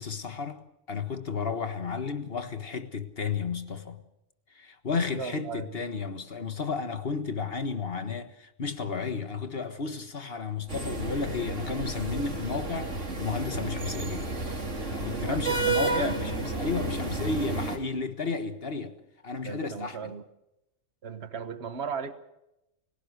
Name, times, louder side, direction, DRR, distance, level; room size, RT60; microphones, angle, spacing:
voice 1, 0.0-4.0 4.5-14.3 14.9-19.0 19.2-20.1, left 5 dB, 50° left, 1.7 m, -33 dB
voice 2, 5.2-5.7 13.5-13.7 15.1-16.1 19.4-20.2 21.0-22.1, right 6 dB, 60° right, 1.6 m, -36 dB
sound 1, 10.7-17.8, right 3 dB, 75° right, 3.6 m, -31 dB
30.0 x 17.0 x 6.6 m
omnidirectional pair, 1.3 m